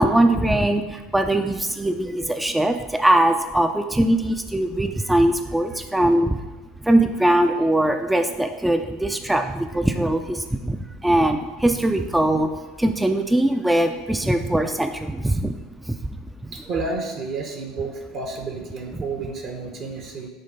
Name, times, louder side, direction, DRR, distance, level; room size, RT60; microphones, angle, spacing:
voice 1, 0.0-6.4 6.8-12.5 12.8-15.6 15.9-16.0 16.4-16.5, right 1 dB, 5° right, 6 dB, 0.4 m, -21 dB
voice 2, 16.5-20.3, right 3 dB, 50° right, 3 dB, 1.0 m, -31 dB
6.5 x 3.8 x 5.3 m, 1.2 s
hypercardioid pair, 75°, 0 cm